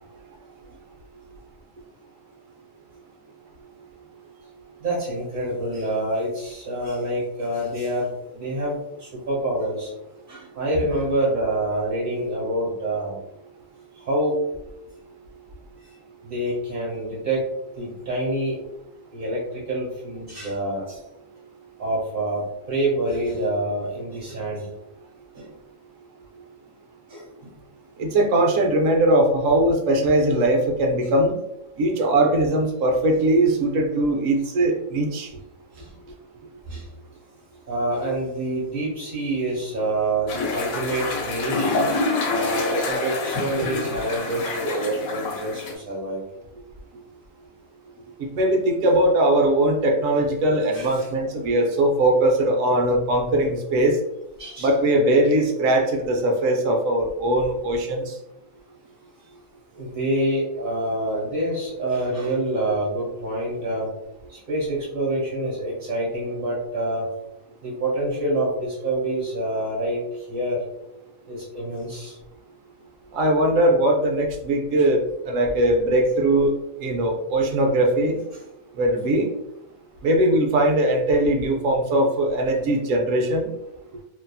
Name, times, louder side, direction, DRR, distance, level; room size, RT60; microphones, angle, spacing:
voice 1, 4.8-9.9 10.3-13.2 14.0-14.4 16.2-17.5 17.8-18.6 19.1-21.0 21.8-24.7 25.3-25.5 27.1-27.5 32.0-32.1 35.7-35.9 36.7-36.9 37.7-41.8 42.3-46.2 48.8-49.0 50.7-51.1 54.4-54.7 59.8-63.9 64.3-67.1 67.6-70.0 70.3-70.6 71.3-72.2, right 1 dB, 40° right, -4 dB, 1.4 m, -27 dB
voice 2, 28.0-31.3 31.8-35.3 48.2-54.0 54.6-58.2 73.1-78.2 78.7-79.3 80.0-83.5, right 1 dB, 70° right, 3 dB, 0.9 m, -20 dB
sound 1, 40.3-45.7, left 3 dB, 80° left, 1.0 m, -27 dB
2.7 x 2.6 x 2.2 m, 0.87 s
omnidirectional pair, 1.4 m